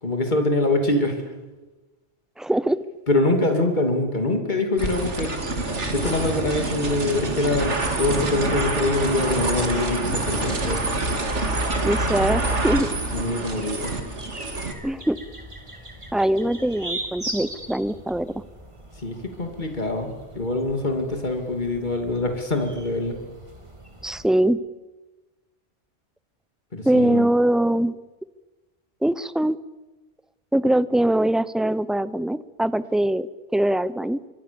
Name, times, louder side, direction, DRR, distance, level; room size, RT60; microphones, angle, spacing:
voice 1, 0.0-1.2 3.1-5.3 5.9-10.8 13.1-13.9 19.0-23.2 26.7-27.2, left 2 dB, 40° left, 4 dB, 3.1 m, -24 dB
voice 2, 2.4-2.8 11.8-12.9 14.8-15.2 16.1-18.3 24.0-24.6 26.8-28.0 29.0-29.6 30.5-34.2, right 1 dB, ahead, 16 dB, 0.5 m, -22 dB
sound 1, 4.8-14.7, right 2 dB, 80° right, 2.8 m, -26 dB
sound 2, 13.5-24.3, right 1 dB, 25° right, 2.8 m, -39 dB
25.5 x 23.5 x 7.1 m, 1.1 s
omnidirectional pair, 1.2 m